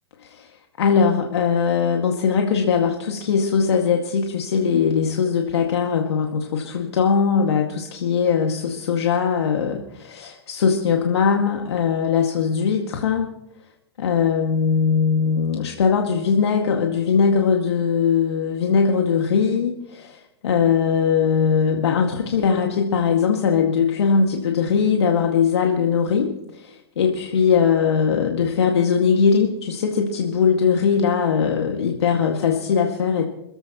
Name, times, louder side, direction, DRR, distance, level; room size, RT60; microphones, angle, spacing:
voice 1, 0.8-13.3 14.0-33.2, left 6 dB, 75° left, 1 dB, 2.1 m, -20 dB
27.0 x 15.0 x 3.1 m, 0.88 s
hypercardioid pair, 115°, 14 cm